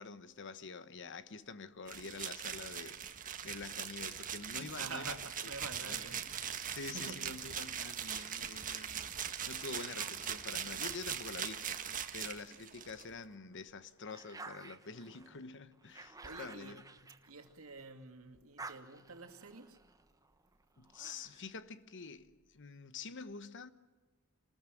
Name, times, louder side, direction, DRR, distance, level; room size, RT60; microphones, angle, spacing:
voice 1, 0.0-3.0 3.4-5.1 5.8-6.0 6.7-11.7 12.1-16.8 20.8-23.7, left 4 dB, 60° left, 1.2 m, -47 dB
sound 1, 1.9-13.0, right 8 dB, 40° right, 1.6 m, -41 dB
voice 2, 4.6-7.4 16.0-19.8, right 4 dB, 70° right, 2.6 m, -49 dB
sound 2, 9.9-12.6 13.1-18.0 18.3-21.6, right 3 dB, 15° right, 1.1 m, -54 dB
27.5 x 20.5 x 9.2 m
head